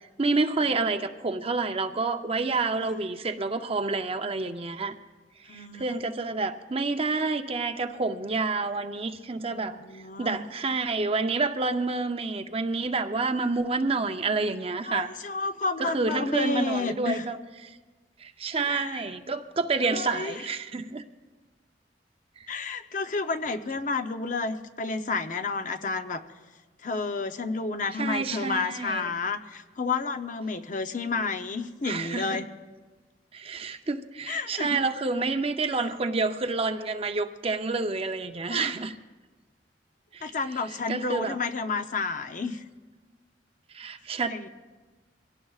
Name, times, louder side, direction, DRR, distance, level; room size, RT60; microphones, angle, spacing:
voice 1, 0.2-4.9 5.5-9.8 10.2-15.1 15.8-17.8 18.2-21.0 22.4-22.5 28.0-29.1 31.8-32.4 33.3-38.9 40.1-40.2 40.9-41.4 43.7-44.5, right 3 dB, 35° right, 8 dB, 0.6 m, -28 dB
voice 2, 5.5-6.0 9.5-10.4 14.8-17.3 18.7-19.0 19.8-20.5 22.5-26.2 26.8-32.5 34.3-34.9 38.5-38.8 40.2-42.6 44.3-44.5, left 4 dB, 45° left, 8 dB, 0.7 m, -31 dB
24.0 x 17.5 x 2.4 m, 1.3 s
head